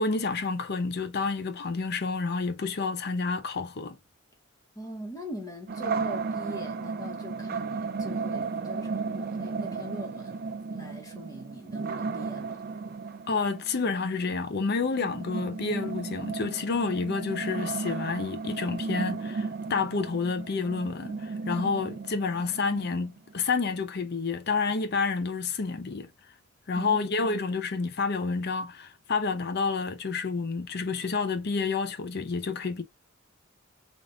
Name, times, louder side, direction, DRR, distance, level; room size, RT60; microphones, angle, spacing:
voice 1, 0.0-4.0 13.3-26.1 26.7-32.8, left 4 dB, 50° left, 0.5 m, -29 dB
voice 2, 4.7-12.6 26.7-27.4, equal, 15° left, 1.1 m, -42 dB
sound 1, 5.7-23.4, right 4 dB, 45° right, 0.4 m, -34 dB
3.5 x 2.5 x 3.8 m
head